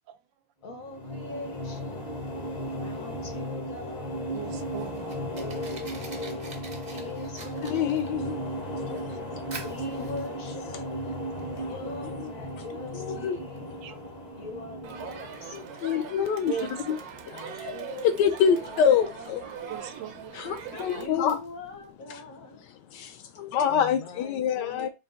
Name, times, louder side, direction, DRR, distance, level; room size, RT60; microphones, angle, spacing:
voice 1, 0.6-2.2 2.7-4.4 5.3-6.3 6.9-8.4 9.6-11.0 11.7-13.8 14.3-16.3 17.3-19.7 20.9-22.6 23.7-24.9, left 3 dB, 55° left, 1.1 m, -43 dB
sound 1, 0.7-16.0, equal, 35° left, 0.6 m, -36 dB
Fire, 4.2-21.9, right 3 dB, 40° right, 0.6 m, -50 dB
voice 2, 4.3-5.2 13.8-14.0 16.5-17.0 19.7-20.5, right 9 dB, 85° right, 1.3 m, -38 dB
voice 3, 7.6-8.4 8.9-9.0 11.6-11.8 12.2-12.3 12.9-13.4 15.5-16.5 16.9-17.0 17.3-17.7 18.0-19.4 20.3-21.4 22.9-24.9, left 7 dB, 75° left, 1.2 m, -26 dB
Crowd, 14.8-21.1, right 8 dB, 65° right, 1.0 m, -42 dB
4.0 x 2.5 x 3.6 m
omnidirectional pair, 2.0 m